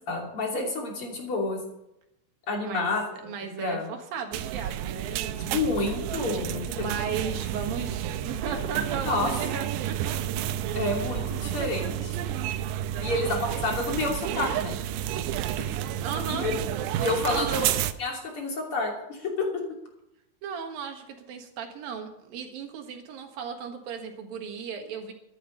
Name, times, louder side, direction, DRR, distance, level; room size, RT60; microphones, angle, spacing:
voice 1, 0.1-1.6 2.5-3.0 3.6-3.9 5.4-6.8 9.1-9.3 10.7-12.2 13.0-14.7 15.6-15.7 16.3-16.5 17.0-17.7 18.0-19.6, left 2 dB, 35° left, 0 dB, 3.3 m, -29 dB
voice 2, 3.2-5.7 6.8-11.1 12.8-13.7 16.0-16.5 17.3-17.7 20.4-25.1, right 6 dB, 65° right, 4 dB, 3.0 m, -36 dB
sound 1, 4.3-17.9, right 11 dB, 85° right, 2.8 m, -30 dB
13.0 x 11.5 x 5.6 m, 0.84 s
omnidirectional pair, 4.9 m